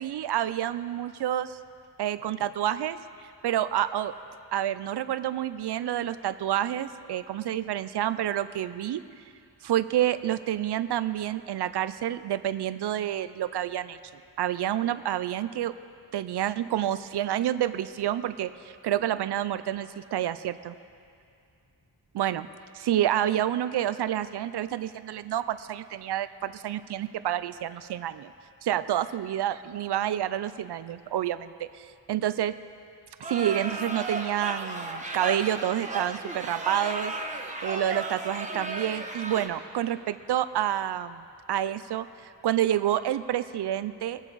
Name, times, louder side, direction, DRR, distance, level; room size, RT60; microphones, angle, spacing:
voice 1, 0.0-1.6 2.0-3.0 3.4-4.1 4.5-9.0 9.6-14.0 14.4-15.7 16.1-20.7 22.1-22.5 22.7-28.3 28.6-32.5 33.3-37.1 37.6-41.2 41.5-44.2, right 11 dB, 70° right, 13 dB, 0.5 m, -28 dB
sound 1, 33.2-39.5, right 2 dB, 15° right, 1.0 m, -34 dB
21.5 x 7.3 x 3.9 m, 2.4 s
wide cardioid pair, 110°, 42 cm